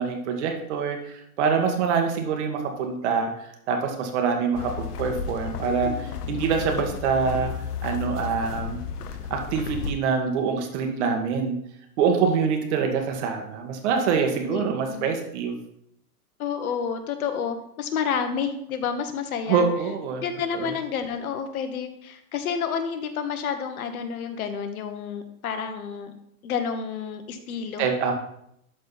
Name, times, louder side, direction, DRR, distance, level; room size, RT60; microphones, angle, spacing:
voice 1, 0.0-7.5 7.8-8.8 9.3-11.6 12.0-15.6 19.5-20.2 20.5-20.7 27.8-28.1, right 6 dB, 50° right, 4 dB, 1.7 m, -25 dB
sound 1, 4.5-9.9, left 7 dB, 85° left, 0.9 m, -33 dB
voice 2, 10.8-11.1 14.5-15.1 16.4-19.7 20.2-26.1 26.4-27.9, left 6 dB, 65° left, 7 dB, 1.4 m, -30 dB
12.5 x 4.2 x 4.1 m, 0.73 s
hypercardioid pair, 140°, 45 cm